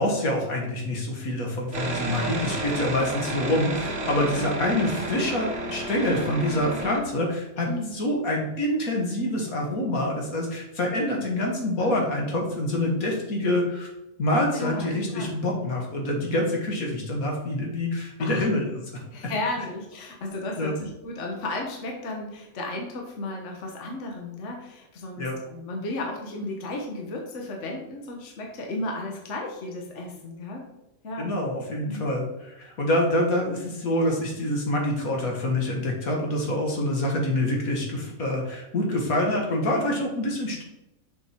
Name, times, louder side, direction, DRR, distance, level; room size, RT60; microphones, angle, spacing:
voice 1, 0.0-13.9 14.2-19.0 20.6-20.8 25.2-25.4 31.2-40.6, left 1 dB, 80° left, 0 dB, 2.0 m, -26 dB
sound 1, 1.7-7.0, right 2 dB, 55° right, 2.0 m, -31 dB
voice 2, 2.1-2.5 4.4-4.5 7.7-8.0 11.8-11.9 14.5-15.3 18.2-18.5 19.1-30.6 31.0-31.3 31.8-32.1 37.1-37.2, left 2 dB, 60° left, 1 dB, 1.4 m, -34 dB
6.7 x 5.4 x 4.4 m, 0.94 s
omnidirectional pair, 1.5 m